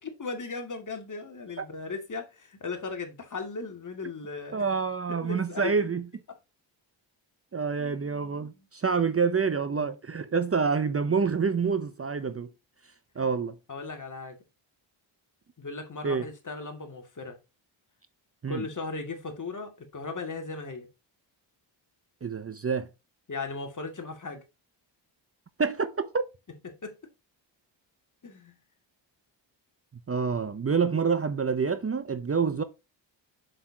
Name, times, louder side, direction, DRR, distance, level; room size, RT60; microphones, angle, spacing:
voice 1, 0.0-4.6 5.2-5.8 7.8-8.7 13.2-13.3 13.7-14.4 15.6-17.4 18.5-20.9 23.3-24.4 26.6-27.0 28.2-28.5, left 4 dB, 40° left, 2.5 m, -37 dB
voice 2, 4.5-6.0 7.5-12.5 13.2-13.5 16.0-16.2 18.4-18.6 22.2-22.9 25.6-26.2 30.1-32.6, right 5 dB, 30° right, 0.7 m, -27 dB
7.5 x 6.7 x 2.9 m
cardioid pair, 100°, 46 cm